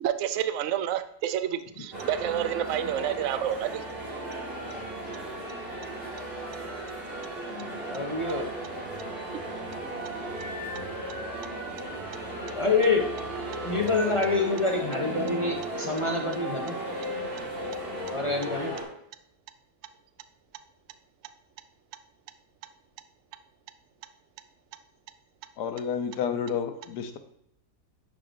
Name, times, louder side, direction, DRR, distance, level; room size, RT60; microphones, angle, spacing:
voice 1, 0.0-3.8, right 10 dB, 75° right, 11 dB, 0.7 m, -29 dB
sound 1, 1.9-18.8, right 1 dB, 35° right, 2.1 m, -35 dB
voice 2, 7.4-8.5 12.5-13.1 13.6-16.8 18.1-18.7, left 3 dB, 40° left, 1 dB, 0.4 m, -27 dB
voice 3, 25.6-27.2, left 7 dB, 75° left, 8 dB, 1.3 m, -30 dB
10.5 x 4.9 x 2.6 m, 0.79 s
omnidirectional pair, 1.8 m